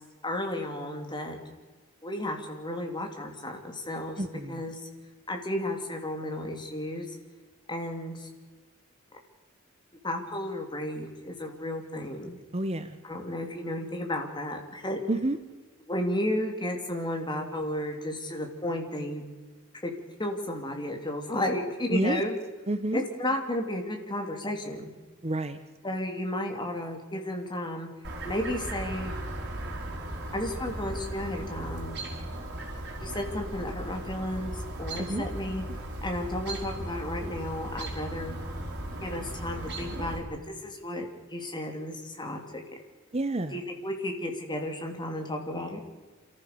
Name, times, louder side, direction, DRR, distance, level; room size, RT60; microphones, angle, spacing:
voice 1, 0.2-1.4 2.0-4.2 4.5-4.8 5.3-7.1 7.7-8.3 10.0-12.4 13.0-15.0 15.9-19.2 19.8-19.9 20.2-22.4 22.9-24.9 25.8-27.9 28.2-29.1 30.3-32.0 33.0-35.6 36.0-38.4 39.0-42.6 43.5-45.8, left 1 dB, 20° left, 3 dB, 3.2 m, -33 dB
voice 2, 4.2-4.6 12.5-13.0 15.1-15.4 21.9-22.2 22.7-23.0 25.2-25.6 35.0-35.2 43.1-43.6, right 1 dB, 30° right, 10 dB, 1.0 m, -29 dB
Chirp tweet, 28.0-40.2, right 1 dB, 55° right, 4.3 m, -37 dB
27.5 x 14.5 x 6.9 m, 1.3 s
head